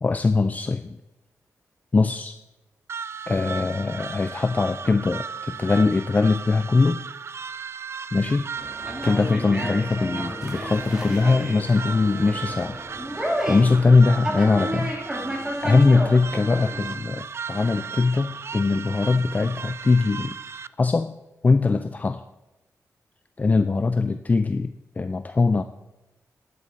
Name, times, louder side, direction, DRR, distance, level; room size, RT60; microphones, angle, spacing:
voice 1, 0.0-1.0 1.9-2.4 3.3-7.0 8.1-8.7 9.0-12.8 13.5-14.9 15.6-20.4 20.8-21.2 21.4-22.2 23.4-25.6, left 3 dB, 25° left, 10 dB, 0.4 m, -21 dB
sound 1, 2.9-20.7, right 6 dB, 50° right, 0.3 m, -36 dB
Conversation, 8.6-16.9, equal, 10° right, 2.3 m, -32 dB
12.0 x 10.5 x 4.1 m, 1.0 s
wide cardioid pair, 120°, 6 cm